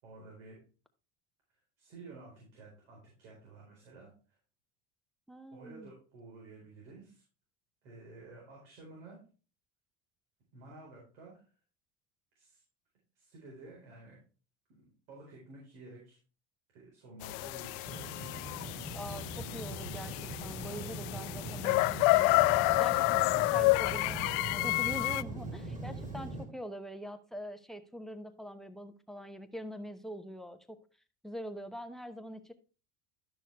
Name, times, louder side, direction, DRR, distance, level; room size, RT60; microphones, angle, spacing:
voice 1, 0.0-0.6 1.8-4.1 5.5-7.2 7.8-9.2 10.5-11.4 12.3-12.6 13.1-14.2 14.7-16.2 16.7-18.2 25.9-26.1, right 3 dB, 80° right, -3 dB, 4.4 m, -52 dB
voice 2, 5.3-5.9 18.9-22.4 22.8-30.8 31.2-32.5, equal, ahead, 11 dB, 0.9 m, -44 dB
sound 1, 17.2-25.2, left 22 dB, 70° left, 0.5 m, -29 dB
sound 2, 17.9-26.5, right 2 dB, 20° right, 2.6 m, -41 dB
12.0 x 6.3 x 3.3 m, 0.36 s
supercardioid pair, 110°, 34 cm